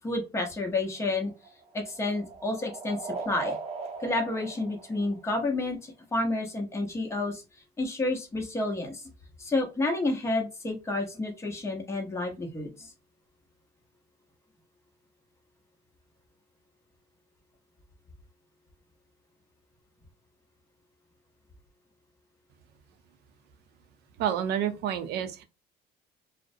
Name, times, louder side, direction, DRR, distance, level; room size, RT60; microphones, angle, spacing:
voice 1, 0.0-1.3 1.7-3.5 4.0-7.4 7.8-9.0 9.4-12.9, left 2 dB, 15° left, 0.8 m, -30 dB
sound 1, 0.9-5.7, right 4 dB, 35° right, 0.7 m, -40 dB
voice 2, 24.2-25.4, right 9 dB, 75° right, 0.5 m, -29 dB
2.4 x 2.0 x 2.6 m
cardioid pair, 110°, 17 cm